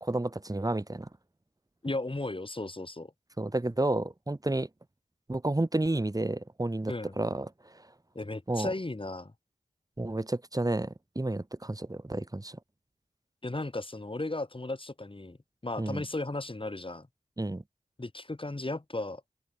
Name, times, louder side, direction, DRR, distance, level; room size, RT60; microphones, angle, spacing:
voice 1, 0.0-1.1 3.4-4.7 5.3-7.5 8.5-8.7 10.0-12.6 15.8-16.0 17.4-17.6, right 2 dB, 20° right, 1.1 m, -31 dB
voice 2, 1.8-3.1 6.9-7.1 8.2-9.3 13.4-15.4 15.6-17.1 18.0-19.2, left 2 dB, 30° left, 2.1 m, -35 dB
open air
cardioid pair, 45°, 17 cm